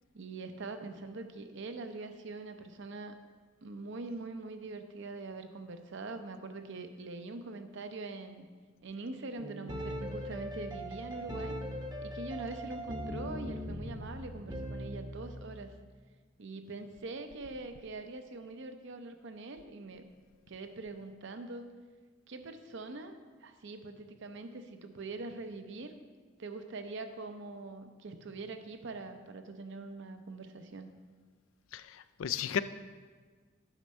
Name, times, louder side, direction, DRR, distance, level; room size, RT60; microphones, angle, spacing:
voice 1, 0.1-3.2 3.6-8.5 8.8-11.6 12.0-15.7 16.4-20.0 20.5-21.7 22.3-23.2 23.4-26.0 26.4-30.9, right 3 dB, 65° right, 7 dB, 0.7 m, -43 dB
sound 1, 9.4-15.4, equal, 20° right, 0.8 m, -40 dB
voice 2, 31.7-32.6, left 8 dB, 85° left, 13 dB, 0.4 m, -34 dB
9.0 x 6.2 x 4.3 m, 1.5 s
head